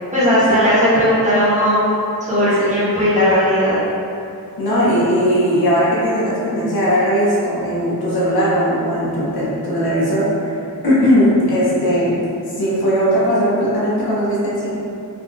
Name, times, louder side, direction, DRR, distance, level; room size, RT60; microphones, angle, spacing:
voice 1, 0.1-1.8 2.2-3.8, equal, 20° right, -10 dB, 0.9 m, -16 dB
voice 2, 4.6-12.2 12.6-14.7, equal, 85° left, -8 dB, 0.9 m, -18 dB
3.5 x 2.3 x 2.6 m, 2.6 s
wide cardioid pair, 110°, 36 cm